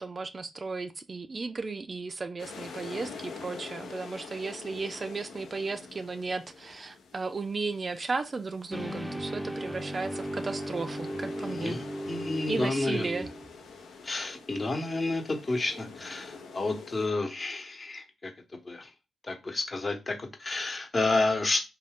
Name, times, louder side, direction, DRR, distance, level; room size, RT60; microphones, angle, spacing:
voice 1, 0.0-11.8 12.5-13.3, right 4 dB, 40° right, 0.3 m, -35 dB
sound 1, 2.4-17.1, left 4 dB, 75° left, 0.6 m, -46 dB
sound 2, 8.7-13.7, right 1 dB, 5° left, 0.6 m, -36 dB
voice 2, 11.4-13.1 14.0-18.3 18.6-18.9 19.2-21.6, left 2 dB, 40° left, 0.9 m, -30 dB
2.5 x 2.3 x 3.4 m
supercardioid pair, 50°, 0 cm